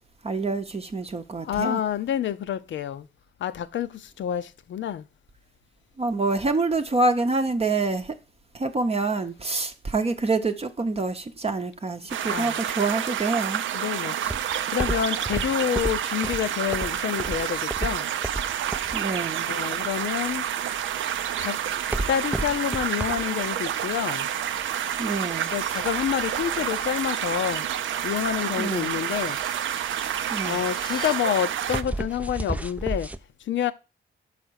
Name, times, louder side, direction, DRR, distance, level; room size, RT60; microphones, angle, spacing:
voice 1, 0.2-1.8 6.0-8.2 8.5-13.6 18.9-19.5 25.0-25.5 28.6-28.9 30.3-30.6, right 3 dB, 30° right, 0.8 m, -26 dB
voice 2, 1.4-3.1 3.4-3.9 4.2-5.0 12.2-12.6 13.7-14.2 14.7-18.1 19.5-20.5 21.4-21.6 22.1-24.3 25.5-27.6 28.0-29.4 30.5-33.1 33.5-33.7, left 9 dB, 70° left, 0.6 m, -28 dB
sound 1, 12.1-31.8, right 10 dB, 70° right, 0.5 m, -29 dB
sound 2, 14.2-33.2, right 1 dB, 5° right, 0.4 m, -34 dB
sound 3, 20.4-31.2, left 3 dB, 20° left, 0.9 m, -47 dB
5.8 x 5.1 x 6.3 m
cardioid pair, 85°, 21 cm